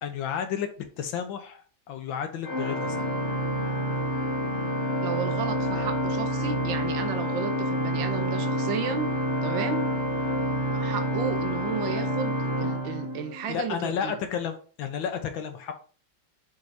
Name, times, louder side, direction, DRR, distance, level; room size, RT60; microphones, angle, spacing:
voice 1, 0.0-1.6 1.9-3.1 13.5-15.8, left 8 dB, 85° left, 7 dB, 1.7 m, -32 dB
Organ, 2.4-13.6, equal, 40° left, 1.8 m, -28 dB
voice 2, 5.0-9.1 9.4-9.9 10.7-14.2, right 7 dB, 80° right, 6 dB, 1.6 m, -33 dB
8.0 x 5.3 x 2.8 m, 0.40 s
omnidirectional pair, 2.1 m